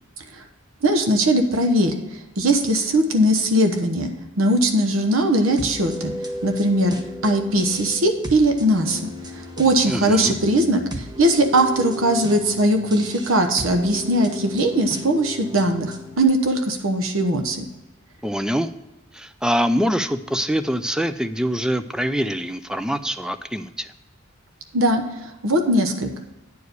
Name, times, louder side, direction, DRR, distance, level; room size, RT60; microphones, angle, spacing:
voice 1, 0.8-1.9 2.4-4.1 4.4-6.1 6.4-7.0 7.2-9.1 9.6-17.6 24.7-25.0 25.4-26.2, right 1 dB, 75° right, 5 dB, 1.0 m, -20 dB
sound 1, 5.6-16.2, equal, 20° right, 0.9 m, -35 dB
voice 2, 9.9-10.3 18.2-18.7 19.1-23.9, equal, 5° right, 11 dB, 0.3 m, -24 dB
9.4 x 4.8 x 6.6 m, 1.1 s
head